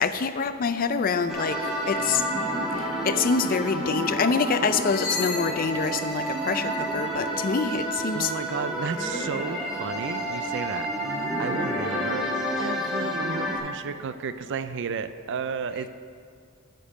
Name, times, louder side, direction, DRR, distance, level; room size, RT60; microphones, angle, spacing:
voice 1, 0.0-2.2 2.8-8.3, left 5 dB, 40° left, 11 dB, 0.4 m, -26 dB
sound 1, 1.3-13.6, right 1 dB, ahead, 1.8 m, -29 dB
sound 2, 2.8-2.9 3.2-3.6 4.5-7.6 9.9-10.2 11.0-11.3 11.7-13.2, left 6 dB, 80° left, 0.8 m, -39 dB
voice 2, 8.1-12.3 12.6-15.9, right 5 dB, 55° right, 12 dB, 0.4 m, -33 dB
13.5 x 5.3 x 5.1 m, 2.1 s
head